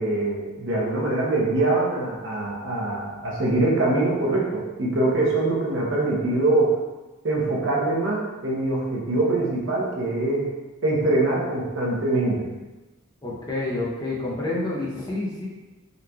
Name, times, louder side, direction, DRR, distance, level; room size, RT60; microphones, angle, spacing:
voice 1, 0.0-6.8 7.2-10.5 10.8-12.5, right 2 dB, 65° right, -3 dB, 0.7 m, -23 dB
voice 2, 13.2-15.5, left 2 dB, 20° left, -5 dB, 0.5 m, -28 dB
3.8 x 3.0 x 2.2 m, 1.1 s
head